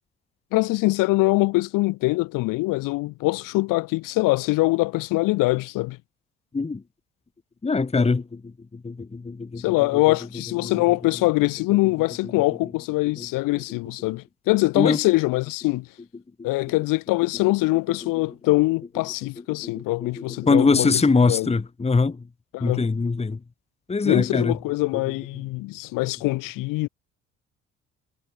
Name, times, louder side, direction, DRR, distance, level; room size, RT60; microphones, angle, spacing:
voice 1, 0.5-6.0 9.6-15.9 16.4-21.5 22.5-22.8 24.0-26.9, left 21 dB, 70° left, 2.4 m, -23 dB
voice 2, 7.6-8.4 8.8-9.6 13.2-13.3 14.8-15.0 19.8-19.9 20.2-22.2 22.6-23.4 23.9-24.5, left 4 dB, 20° left, 1.3 m, -22 dB
hypercardioid pair, 50°, 34 cm